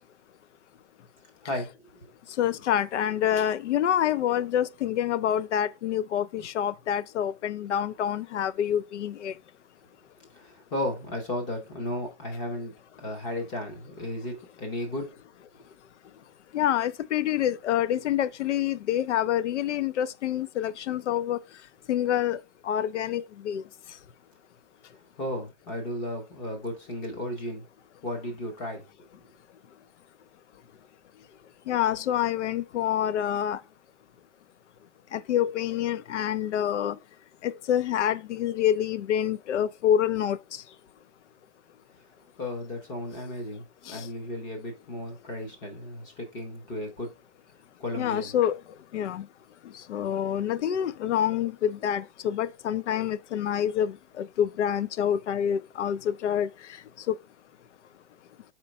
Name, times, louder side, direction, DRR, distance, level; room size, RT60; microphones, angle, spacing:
voice 1, 1.4-2.1 10.3-12.7 13.0-15.1 15.5-15.6 25.2-27.6 28.0-28.8 42.4-47.1 47.8-48.3, left 1 dB, 15° left, 0.8 m, -34 dB
voice 2, 2.4-9.3 16.5-21.4 21.9-22.4 22.7-23.6 31.7-33.6 35.1-36.9 37.4-40.4 48.0-48.6 48.9-49.2 49.9-53.9 54.2-56.5 57.1-57.2, left 10 dB, 80° left, 0.5 m, -27 dB
4.4 x 4.3 x 5.1 m
hypercardioid pair, 170°, 35 cm